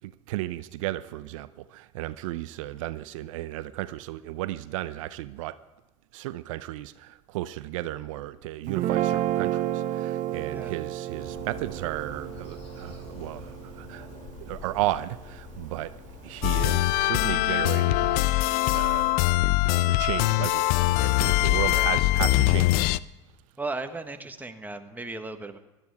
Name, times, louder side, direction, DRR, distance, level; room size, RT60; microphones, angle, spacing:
voice 1, 0.0-5.6 6.1-14.1 14.4-15.9 16.2-18.3 18.7-19.2 19.5-22.9, right 15 dB, 75° right, 0.6 m, -34 dB
Guitar, 8.7-15.0, right 13 dB, 50° right, 0.9 m, -31 dB
sound 1, 11.1-18.3, left 3 dB, 35° left, 2.6 m, -45 dB
sound 2, 16.4-23.0, left 18 dB, 60° left, 0.5 m, -23 dB
voice 2, 21.7-22.0 23.6-25.6, right 3 dB, 10° right, 1.4 m, -36 dB
16.5 x 12.5 x 4.8 m
hypercardioid pair, 90°, 17 cm